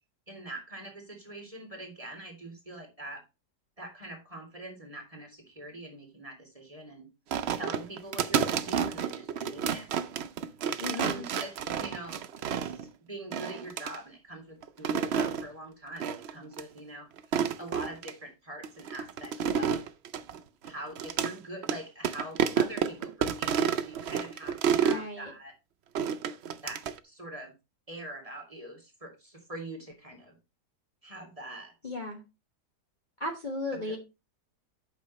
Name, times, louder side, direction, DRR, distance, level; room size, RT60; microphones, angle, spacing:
voice 1, 0.3-3.2 3.8-7.1 7.5-9.9 10.9-12.2 12.6-17.1 17.6-19.9 20.6-25.5 26.6-27.5 27.9-30.4 31.0-31.9 33.8-34.0, right 1 dB, 20° right, 3 dB, 2.3 m, -43 dB
sound 1, 7.3-12.9 13.3-14.0 14.6-15.4 16.0-16.3 16.6-16.7 17.2-18.1 18.6-21.3 21.6-21.8 22.0-25.0 25.9-27.0, right 7 dB, 70° right, 0.6 m, -30 dB
voice 2, 10.8-11.2 24.8-25.3 31.8-32.2 33.2-34.0, left 2 dB, 30° left, 0 dB, 1.3 m, -35 dB
8.5 x 6.1 x 4.1 m, 0.26 s
omnidirectional pair, 1.8 m